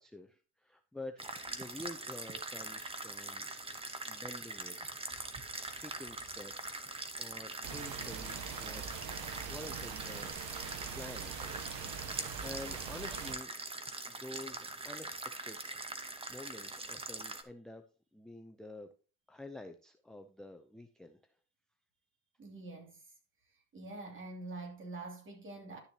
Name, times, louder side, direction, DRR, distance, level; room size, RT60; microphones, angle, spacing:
voice 1, 0.0-3.5 4.0-4.8 5.6-6.8 7.2-9.0 9.5-11.6 12.1-13.5 14.0-15.2 15.4-15.8 16.3-17.8 18.1-18.9 19.3-21.3, left 1 dB, ahead, 0.5 m, -49 dB
sound 1, 1.2-17.4, right 2 dB, 15° right, 1.0 m, -43 dB
sound 2, 7.6-13.3, right 7 dB, 65° right, 1.5 m, -43 dB
voice 2, 22.4-23.1 23.7-25.8, right 2 dB, 30° right, 2.7 m, -45 dB
11.5 x 6.9 x 2.9 m
cardioid pair, 120°, 38 cm